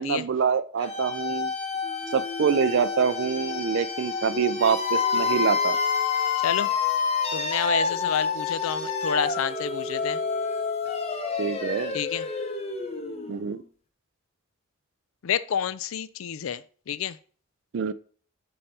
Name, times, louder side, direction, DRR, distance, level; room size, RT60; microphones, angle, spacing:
voice 1, 0.0-1.5 2.1-5.8 11.4-12.0 13.3-13.6 17.7-17.9, right 6 dB, 60° right, 0.4 m, -25 dB
sound 1, 0.8-13.6, left 5 dB, 30° left, 0.8 m, -28 dB
voice 2, 7.3-10.2 11.9-12.3 15.2-17.2, left 8 dB, 75° left, 0.4 m, -29 dB
5.5 x 5.3 x 4.3 m
head